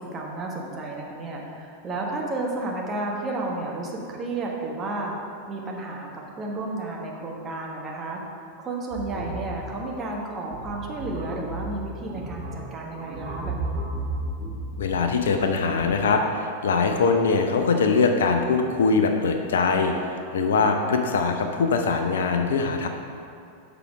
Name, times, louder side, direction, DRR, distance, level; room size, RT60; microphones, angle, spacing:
voice 1, 0.0-5.1 5.5-13.8, right 2 dB, 25° right, -1 dB, 1.3 m, -32 dB
sound 1, 8.9-16.0, right 2 dB, 45° right, 1.9 m, -34 dB
voice 2, 14.8-22.9, left 4 dB, 60° left, 4 dB, 0.6 m, -22 dB
6.8 x 5.9 x 4.9 m, 2.5 s
figure-of-eight pair, 90°, 0 cm